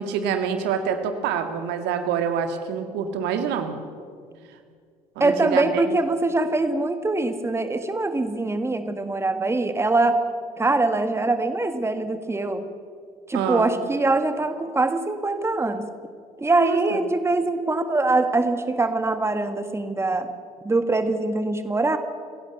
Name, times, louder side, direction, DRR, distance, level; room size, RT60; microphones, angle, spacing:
voice 1, 0.0-3.8 5.2-5.8 13.3-13.7 16.6-17.0, right 7 dB, 55° right, 7 dB, 2.1 m, -26 dB
voice 2, 5.2-10.2 10.6-12.6 13.3-15.9 16.4-20.3 20.6-22.0, right 2 dB, 15° right, 9 dB, 1.8 m, -23 dB
29.5 x 17.0 x 7.8 m, 2.1 s
figure-of-eight pair, 55°, 20 cm